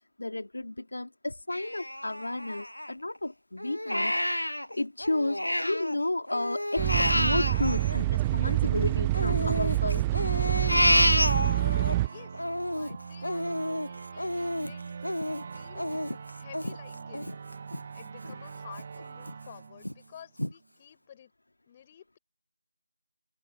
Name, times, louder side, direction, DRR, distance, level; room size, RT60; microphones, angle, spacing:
voice 1, 0.2-4.2 4.7-10.0, left 2 dB, 60° left, 3.3 m, -32 dB
Crying sobbing, 1.5-3.2 3.6-6.0 6.3-8.7 9.1-11.9 12.3-17.8 18.2-18.3 18.8-19.3 19.8-19.9 20.4-20.5, left 1 dB, 80° left, 1.3 m, -29 dB
sound 1, 6.8-12.1, right 17 dB, 10° right, 0.4 m, -26 dB
sound 2, 11.3-20.6, right 5 dB, 25° right, 2.2 m, -43 dB
voice 2, 12.0-14.8 15.5-16.0 16.3-17.3 17.9-21.3 21.7-22.2, left 9 dB, 15° left, 7.2 m, -51 dB
open air
figure-of-eight pair, 165°, 0 cm